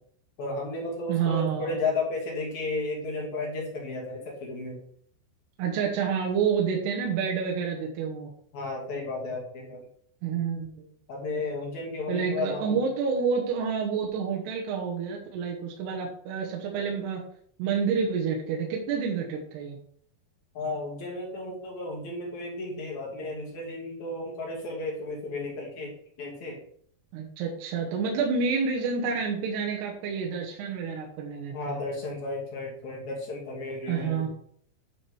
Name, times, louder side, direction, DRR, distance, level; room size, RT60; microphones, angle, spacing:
voice 1, 0.4-4.8 8.5-9.9 11.1-12.8 20.5-26.6 31.5-34.3, left 2 dB, 55° left, -1 dB, 2.8 m, -33 dB
voice 2, 1.1-1.8 5.6-8.3 10.2-10.9 12.1-17.2 17.6-19.8 27.1-31.8 33.9-34.3, right 6 dB, 80° right, 0 dB, 3.2 m, -29 dB
9.8 x 4.4 x 4.8 m, 0.62 s
omnidirectional pair, 4.7 m